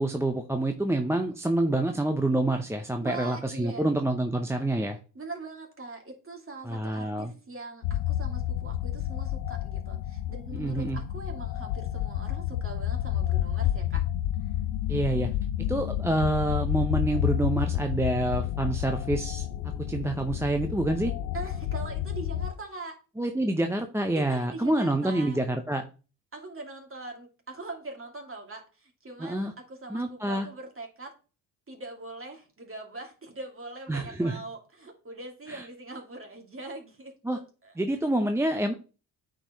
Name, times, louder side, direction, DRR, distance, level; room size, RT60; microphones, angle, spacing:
voice 1, 0.0-5.0 6.6-7.3 10.5-11.0 14.9-15.3 15.7-19.5 19.9-21.1 23.2-25.8 29.2-29.5 29.9-30.5 33.9-34.4 35.5-35.6 37.2-37.4 37.8-38.7, right 1 dB, 5° right, 5 dB, 0.7 m, -27 dB
voice 2, 3.0-3.9 5.1-14.1 14.4-14.5 21.3-23.0 24.1-25.4 26.3-31.1 31.7-37.7, right 2 dB, 25° right, 2 dB, 2.6 m, -42 dB
sound 1, 7.8-22.5, left 12 dB, 85° left, 0.6 m, -30 dB
8.7 x 4.6 x 3.1 m, 0.35 s
hypercardioid pair, 55°, 48 cm